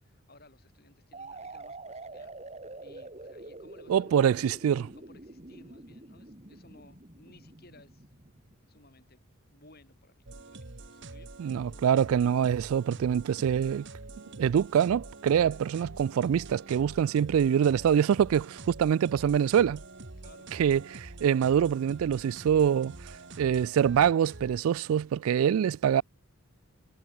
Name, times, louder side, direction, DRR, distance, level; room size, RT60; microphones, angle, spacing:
voice 1, 0.0-2.4 2.8-8.1 8.7-9.2 9.5-11.3 20.2-20.5, left 2 dB, 45° left, 7.9 m, -58 dB
sound 1, 1.1-8.8, right 2 dB, 30° right, 2.1 m, -46 dB
voice 2, 3.9-4.9 11.4-13.8 14.4-19.8 20.6-22.9 23.4-26.0, right 8 dB, 75° right, 0.3 m, -25 dB
sound 2, 10.3-24.6, right 2 dB, 55° right, 1.5 m, -46 dB
head